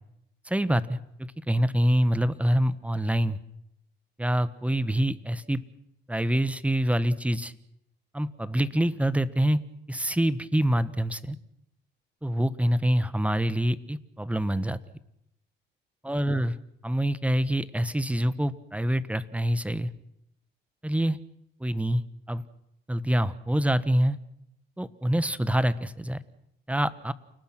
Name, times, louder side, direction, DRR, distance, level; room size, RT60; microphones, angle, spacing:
voice 1, 0.4-3.4 4.2-5.6 6.1-7.5 8.1-9.6 9.9-11.4 12.2-14.8 16.0-16.5 16.8-19.9 20.8-21.2 21.6-22.0 22.3-22.4 22.9-24.2 24.8-26.2 26.7-27.1, right 1 dB, 5° right, 15 dB, 1.4 m, -26 dB
29.0 x 19.0 x 6.1 m, 0.81 s
cardioid pair, 90°, 20 cm